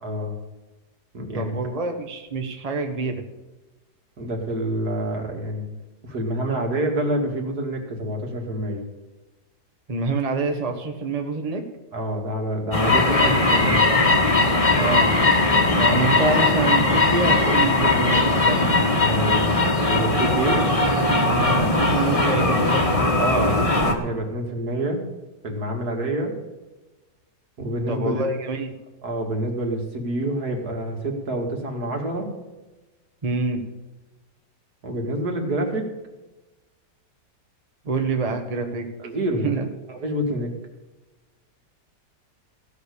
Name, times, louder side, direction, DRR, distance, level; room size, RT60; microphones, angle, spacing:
voice 1, 0.0-0.4 1.1-1.6 4.2-5.6 6.0-8.8 11.9-14.0 19.0-20.7 23.2-25.0 25.4-26.3 27.6-28.3 29.0-32.3 34.8-35.9 39.0-39.5 39.9-40.5, right 1 dB, 60° right, 2 dB, 2.7 m, -27 dB
voice 2, 1.3-3.2 9.9-11.6 14.8-15.1 15.7-18.6 21.3-22.8 27.9-28.7 33.2-33.6 37.9-38.8 39.4-39.6, right 3 dB, 25° right, 4 dB, 1.3 m, -26 dB
sound 1, 12.7-23.9, left 2 dB, 20° left, 1.5 m, -19 dB
16.0 x 6.6 x 8.4 m, 1.1 s
omnidirectional pair, 1.9 m